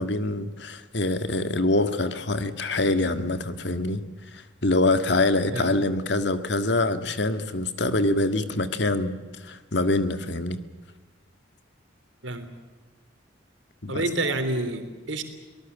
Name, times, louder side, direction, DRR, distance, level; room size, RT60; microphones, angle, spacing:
voice 1, 0.0-4.0 4.3-10.6 13.8-14.0, left 2 dB, 65° left, 10 dB, 1.8 m, -25 dB
voice 2, 13.9-15.2, right 2 dB, 80° right, 8 dB, 3.5 m, -28 dB
24.0 x 19.5 x 8.3 m, 1.3 s
head